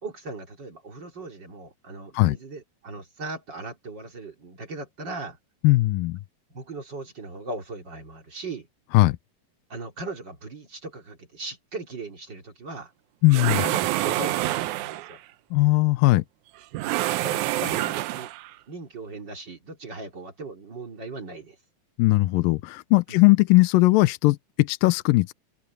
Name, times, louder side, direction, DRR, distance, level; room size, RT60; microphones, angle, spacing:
voice 1, 0.0-5.4 6.5-8.7 9.7-12.9 13.6-15.2 16.8-18.3 18.7-21.6 23.1-23.3, right 2 dB, 30° right, 3.1 m, -38 dB
voice 2, 5.6-6.2 8.9-9.2 13.2-13.6 15.5-16.2 22.0-25.3, left 20 dB, 85° left, 2.3 m, -19 dB
sound 1, 13.3-15.2 16.7-18.5, right 16 dB, 80° right, 1.7 m, -27 dB
omnidirectional pair, 4.2 m